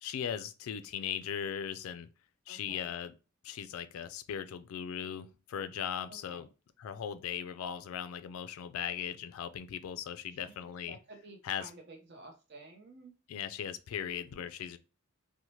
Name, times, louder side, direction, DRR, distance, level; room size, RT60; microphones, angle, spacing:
voice 1, 0.0-2.1 2.5-3.1 3.4-6.5 6.8-11.0 11.4-11.7 13.3-14.8, left 8 dB, 90° left, 0.3 m, -38 dB
voice 2, 2.5-2.9 6.1-6.5 10.3-10.5 10.8-13.2, right 2 dB, 55° right, 0.6 m, -52 dB
2.7 x 2.1 x 3.0 m
head